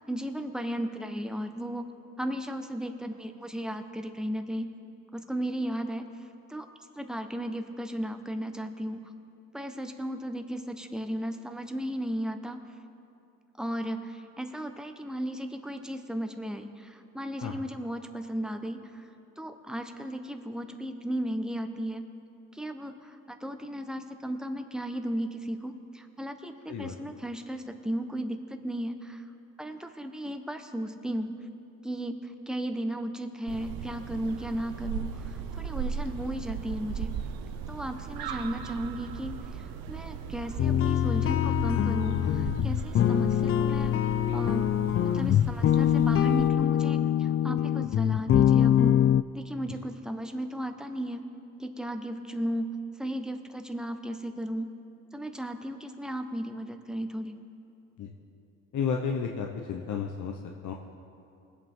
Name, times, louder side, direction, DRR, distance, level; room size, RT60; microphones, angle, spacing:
voice 1, 0.0-1.9 2.2-4.7 5.1-6.1 6.5-6.7 7.0-9.1 9.5-12.6 13.6-19.0 19.4-22.1 22.5-29.2 29.6-31.4 31.8-37.2 37.7-43.9 44.3-44.7 45.0-49.0 49.3-51.2 51.6-54.7 55.1-57.4, equal, ahead, 6 dB, 1.1 m, -35 dB
sound 1, 33.5-46.5, right 7 dB, 80° right, 0.7 m, -38 dB
sound 2, 40.6-49.2, left 10 dB, 40° left, 0.4 m, -24 dB
voice 2, 58.7-60.7, left 6 dB, 55° left, 2 dB, 1.0 m, -32 dB
20.5 x 8.4 x 3.7 m, 2.6 s
supercardioid pair, 60°, 35 cm